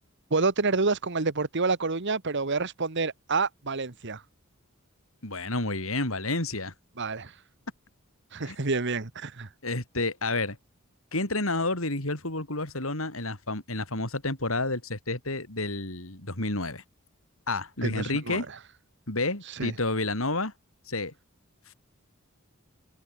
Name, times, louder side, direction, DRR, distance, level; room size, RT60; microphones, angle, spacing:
voice 1, 0.3-4.2 7.0-7.3 8.3-9.5 17.8-18.4 19.6-19.7, right 3 dB, 55° right, 1.5 m, -28 dB
voice 2, 5.2-6.7 8.4-8.6 9.6-10.6 11.1-16.8 17.5-18.5 19.1-20.5 20.9-21.1, left 2 dB, 70° left, 5.5 m, -30 dB
head